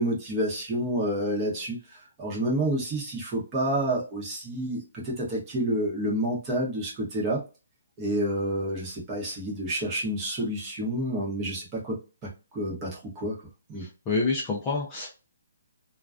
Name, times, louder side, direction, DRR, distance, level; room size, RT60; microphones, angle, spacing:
voice 1, 0.0-1.8 2.2-7.4 8.0-13.4 13.7-13.9, right 1 dB, 15° right, -3 dB, 0.9 m, -29 dB
voice 2, 13.8-15.1, left 3 dB, 15° left, -3 dB, 0.4 m, -28 dB
2.4 x 2.2 x 2.3 m, 0.31 s
hypercardioid pair, 165°, 0 cm